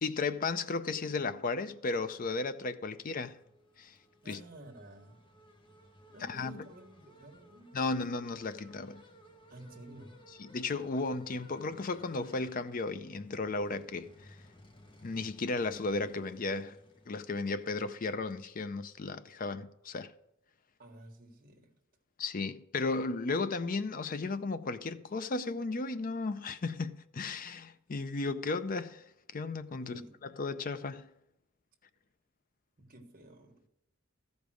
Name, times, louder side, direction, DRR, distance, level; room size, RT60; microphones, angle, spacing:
voice 1, 0.0-3.4 3.8-4.0 4.3-4.4 6.2-6.7 7.7-9.0 10.4-14.4 15.0-16.8 17.1-20.1 22.2-29.0 29.3-31.1, left 3 dB, 40° left, 0.5 m, -35 dB
sound 1, 3.3-17.8, equal, 25° left, 1.0 m, -59 dB
voice 2, 4.2-5.2 6.1-7.8 9.5-10.2 20.8-21.8 29.8-30.1 32.8-33.7, right 1 dB, 40° right, 1.5 m, -52 dB
14.0 x 5.2 x 6.3 m
head